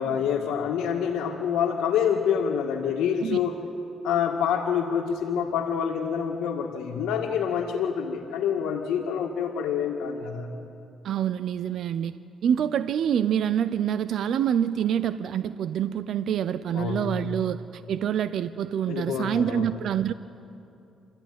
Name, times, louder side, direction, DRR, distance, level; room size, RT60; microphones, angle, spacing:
voice 1, 0.0-3.5 4.0-10.5 16.7-17.3 18.9-19.7, left 7 dB, 85° left, -2 dB, 1.8 m, -27 dB
voice 2, 11.0-12.1 12.4-20.1, right 9 dB, 70° right, 13 dB, 0.6 m, -26 dB
27.5 x 14.0 x 9.4 m, 2.7 s
cardioid pair, 90°, 0 cm